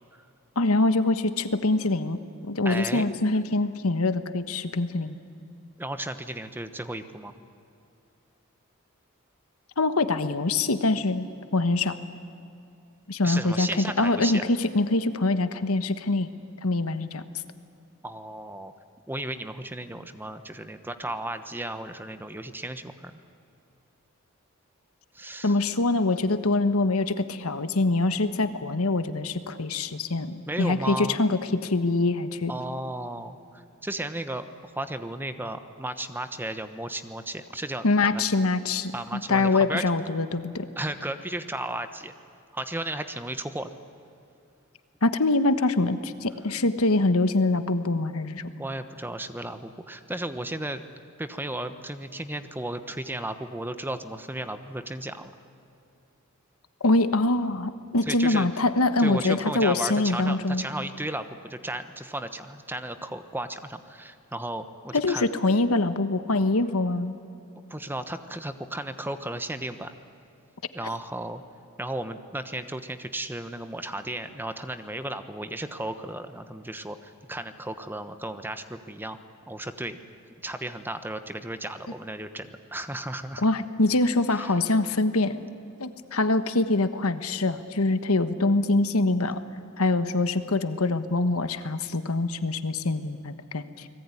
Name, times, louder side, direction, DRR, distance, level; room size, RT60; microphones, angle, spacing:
voice 1, 0.5-2.2 2.4-5.2 9.8-12.0 13.1-16.3 16.6-17.2 25.4-32.5 37.8-40.7 45.0-48.4 56.8-60.6 64.9-67.2 83.4-85.4 85.8-89.4 89.8-93.9, left 2 dB, 90° left, 11 dB, 1.3 m, -24 dB
voice 2, 2.6-3.0 5.8-7.3 13.2-14.4 18.0-18.7 19.1-23.2 25.1-25.5 30.5-31.2 32.5-34.5 34.7-38.2 38.9-39.8 40.8-42.1 42.5-43.7 48.6-50.8 51.2-55.3 58.0-58.6 59.0-65.3 67.7-69.9 70.7-71.4 71.8-79.2 79.5-80.0 80.4-83.5 84.3-84.6, right 1 dB, 10° right, 10 dB, 1.1 m, -34 dB
29.5 x 20.5 x 9.9 m, 2.6 s
head